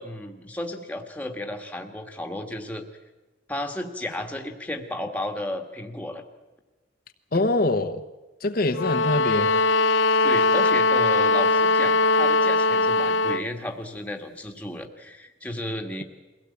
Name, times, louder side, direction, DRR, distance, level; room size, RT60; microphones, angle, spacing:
voice 1, 0.0-2.9 3.5-6.2 7.3-7.4 10.2-16.0, left 1 dB, 5° left, 4 dB, 1.6 m, -33 dB
voice 2, 7.3-8.0 8.4-9.6, left 2 dB, 50° left, 5 dB, 0.9 m, -24 dB
sound 1, 8.7-13.5, left 3 dB, 75° left, 0.6 m, -20 dB
23.0 x 16.5 x 8.5 m, 1.2 s
head